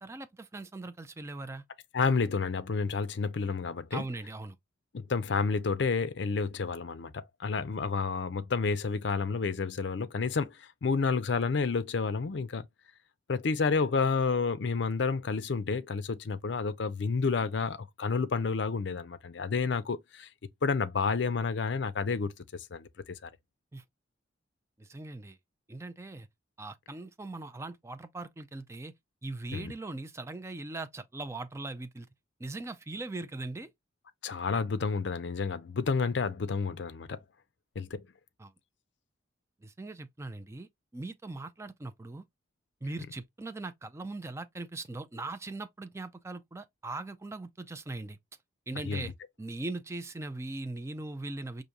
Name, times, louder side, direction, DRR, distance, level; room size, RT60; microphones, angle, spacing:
voice 1, 0.0-1.6 3.9-4.6 23.7-23.8 24.8-25.4 25.7-26.3 26.6-28.9 29.2-32.1 32.4-33.7 38.4-38.5 39.6-42.2 42.8-48.2 48.7-49.1 49.4-51.6, right 2 dB, 15° right, 0.4 m, -40 dB
voice 2, 1.9-4.0 4.9-12.7 13.3-20.3 20.6-23.3 29.5-29.7 34.2-37.2 37.8-38.0 48.8-49.1, left 4 dB, 65° left, 0.5 m, -30 dB
5.0 x 2.6 x 2.8 m
head